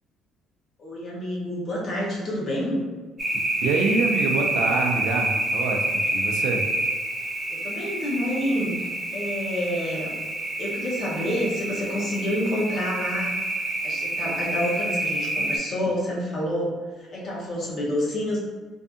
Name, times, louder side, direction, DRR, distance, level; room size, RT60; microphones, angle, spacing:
voice 1, 0.8-2.8 7.5-8.9 9.1-10.1 10.6-13.3 13.8-18.4, equal, 40° left, -4 dB, 0.7 m, -28 dB
sound 1, 3.2-15.6, right 1 dB, 25° right, 0.7 m, -28 dB
voice 2, 3.6-6.6, right 4 dB, 80° right, 3 dB, 0.3 m, -26 dB
2.6 x 2.5 x 2.3 m, 1.4 s
cardioid pair, 145°, 0 cm